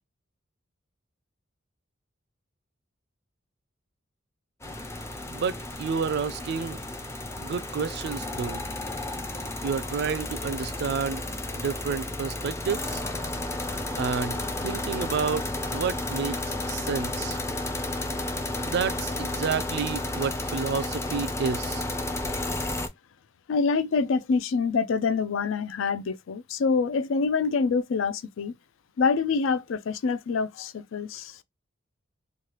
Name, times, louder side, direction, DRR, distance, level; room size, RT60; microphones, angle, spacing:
sound 1, 4.6-22.9, left 2 dB, 15° left, 0.4 m, -32 dB
voice 1, 5.3-6.8 7.4-8.7 9.6-11.2 11.5-13.0 14.0-17.4 18.7-21.9, right 6 dB, 55° right, 0.3 m, -30 dB
voice 2, 23.5-28.5 29.0-31.4, left 4 dB, 75° left, 0.4 m, -26 dB
3.2 x 2.3 x 2.8 m
head